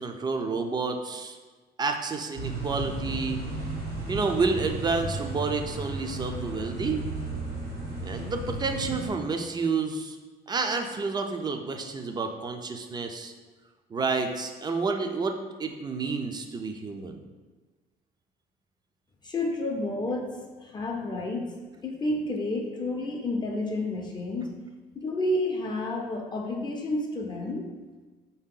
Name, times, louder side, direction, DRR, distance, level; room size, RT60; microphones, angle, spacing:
voice 1, 0.0-1.4 1.8-3.4 4.1-7.0 8.0-10.2 10.5-13.3 13.9-17.2, right 4 dB, 25° right, 5 dB, 0.4 m, -30 dB
sound 1, 2.3-9.1, right 2 dB, 80° right, 1.5 m, -34 dB
voice 2, 19.2-21.5 21.8-24.5 25.0-27.7, left 2 dB, 25° left, 0 dB, 0.5 m, -30 dB
4.2 x 2.8 x 3.7 m, 1.3 s
cardioid pair, 110°, 17 cm